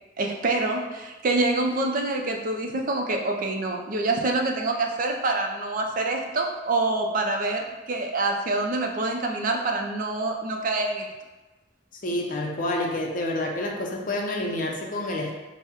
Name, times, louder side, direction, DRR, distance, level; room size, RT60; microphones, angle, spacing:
voice 1, 0.2-11.1, right 2 dB, 50° right, 2 dB, 0.5 m, -26 dB
voice 2, 12.0-15.3, left 1 dB, 50° left, 1 dB, 0.6 m, -28 dB
5.7 x 2.1 x 2.9 m, 1.1 s
head